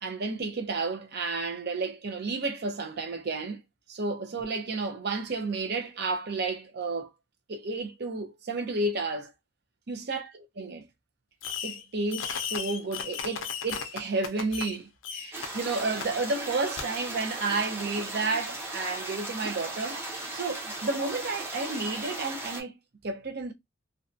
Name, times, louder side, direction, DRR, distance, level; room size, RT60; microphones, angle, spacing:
voice 1, 0.0-3.6 3.9-7.1 7.5-9.3 9.9-10.3 10.6-10.9 11.6-20.0 20.3-22.7 23.0-23.5, right 3 dB, 55° right, 0.6 m, -31 dB
Fireworks, 11.4-11.8 12.1-14.8 15.0-15.5 16.0-16.1 16.8-16.9, left 7 dB, 75° left, 0.5 m, -35 dB
sound 1, 15.3-22.6, right 2 dB, 10° right, 0.8 m, -37 dB
2.7 x 2.2 x 2.4 m
head